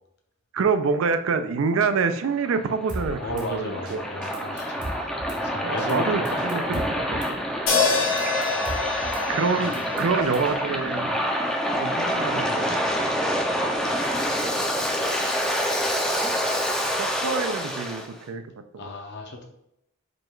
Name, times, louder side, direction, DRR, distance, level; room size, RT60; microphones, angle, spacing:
voice 1, 0.5-4.0 4.3-4.5 5.6-7.5 9.3-11.2 11.7-12.8 13.8-15.0 16.9-18.4 18.7-18.9, right 5 dB, 80° right, 9 dB, 0.4 m, -27 dB
Waves surf, 2.3-18.1, equal, 5° left, 0.4 m, -27 dB
Drum kit / Snare drum, 2.9-3.5 3.9-4.0 4.2-5.4 5.8-6.0 6.3-7.3 7.7-7.8 8.1-9.2 9.6-10.5, right 1 dB, 40° right, 0.7 m, -37 dB
voice 2, 3.2-6.4 6.7-6.9 9.6-9.8 18.8-19.5, left 2 dB, 55° left, 2 dB, 0.7 m, -35 dB
sound 1, 7.7-11.9, left 4 dB, 70° left, 1.0 m, -27 dB
5.0 x 2.4 x 3.0 m, 0.77 s
head